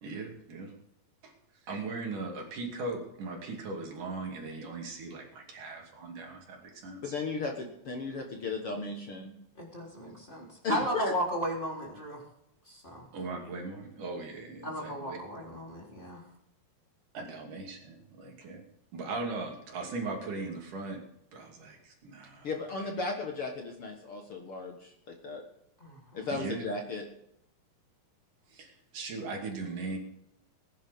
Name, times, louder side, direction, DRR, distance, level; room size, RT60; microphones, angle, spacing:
voice 1, 0.0-0.7 1.2-1.3 1.6-7.1 13.1-15.2 17.1-18.6 18.9-21.0 21.3-22.5 22.8-22.9 26.3-26.6 28.5-30.0, right 3 dB, 75° right, 1 dB, 4.2 m, -39 dB
voice 2, 7.0-9.3 10.6-11.1 22.4-25.4 26.1-27.0, left 3 dB, 50° left, 2 dB, 2.1 m, -35 dB
voice 3, 9.6-12.2 12.7-13.1 14.6-16.2 25.8-26.3, equal, 15° left, -2 dB, 3.8 m, -35 dB
20.5 x 10.5 x 3.7 m, 0.78 s
omnidirectional pair, 3.7 m